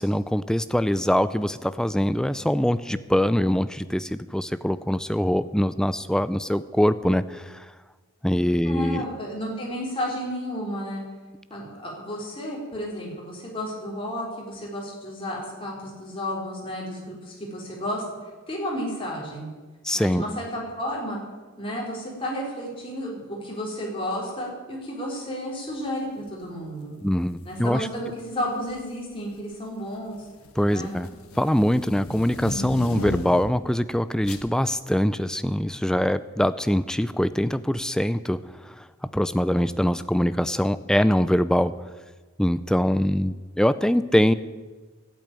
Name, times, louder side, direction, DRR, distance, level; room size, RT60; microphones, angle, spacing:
voice 1, 0.0-7.7 8.2-9.1 19.8-20.2 27.0-27.9 30.6-31.1 31.4-38.8 39.1-41.7 42.4-44.3, equal, 5° left, 14 dB, 0.4 m, -23 dB
voice 2, 8.6-11.0 11.5-18.0 18.5-19.5 19.9-21.2 21.6-26.9 27.4-30.3 30.7-30.9, equal, 25° left, -3 dB, 3.8 m, -32 dB
sound 1, 27.3-27.6 28.6-29.0 29.4-33.6 34.2-34.5, left 2 dB, 85° left, 1.3 m, -35 dB
12.5 x 8.6 x 8.9 m, 1.3 s
head